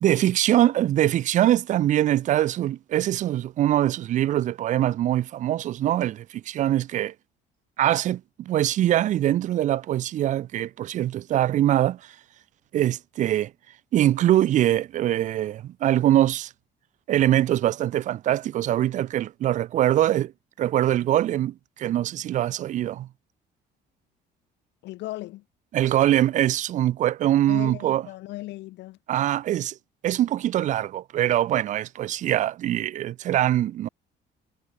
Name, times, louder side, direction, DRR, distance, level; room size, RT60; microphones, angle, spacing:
voice 1, 0.0-7.1 7.8-12.1 12.7-13.5 13.9-16.5 17.1-20.3 20.6-23.1 25.7-28.0 29.1-29.7 30.0-33.9, right 12 dB, 45° right, 0.5 m, -23 dB
voice 2, 24.8-25.4 27.5-29.0, left 17 dB, 85° left, 1.3 m, -36 dB
cardioid pair, 175°, 18 cm